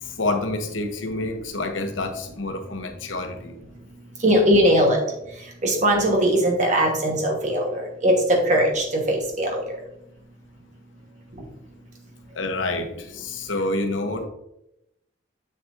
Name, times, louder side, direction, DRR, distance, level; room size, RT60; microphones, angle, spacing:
voice 1, 0.0-3.5 12.3-14.3, left 2 dB, 80° left, 6 dB, 0.9 m, -28 dB
voice 2, 4.2-5.0 5.6-9.6, equal, 40° right, 1 dB, 1.3 m, -20 dB
7.0 x 6.9 x 2.6 m, 0.84 s
head